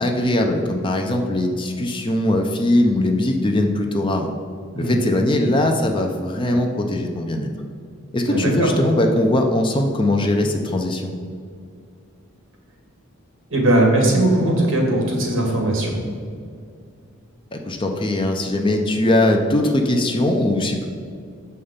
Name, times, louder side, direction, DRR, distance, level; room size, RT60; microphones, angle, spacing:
voice 1, 0.0-4.3 4.8-7.5 8.1-11.1 17.5-20.8, left 1 dB, 25° left, 3 dB, 0.5 m, -20 dB
voice 2, 8.3-8.7 13.5-15.9, right 1 dB, 65° right, 0 dB, 2.0 m, -19 dB
6.9 x 5.6 x 5.1 m, 2.3 s
head